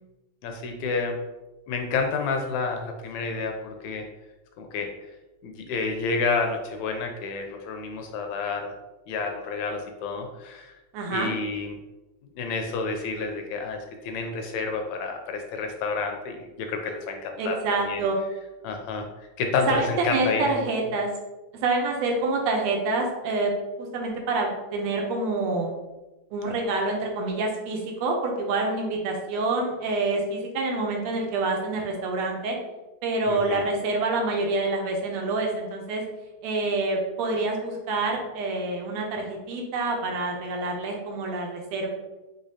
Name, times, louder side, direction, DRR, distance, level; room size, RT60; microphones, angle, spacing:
voice 1, 0.4-1.2 1.7-4.0 4.6-4.9 5.4-8.7 9.1-10.7 11.1-11.8 12.3-17.6 17.8-18.0 18.6-20.4 33.2-33.6, left 4 dB, 80° left, 4 dB, 1.7 m, -29 dB
voice 2, 10.9-11.3 17.4-18.2 19.7-21.1 21.6-23.5 23.8-25.7 26.3-32.6 33.0-36.0 36.4-41.9, right 3 dB, 75° right, 1 dB, 1.7 m, -27 dB
4.9 x 3.5 x 2.7 m, 1.1 s
omnidirectional pair, 3.4 m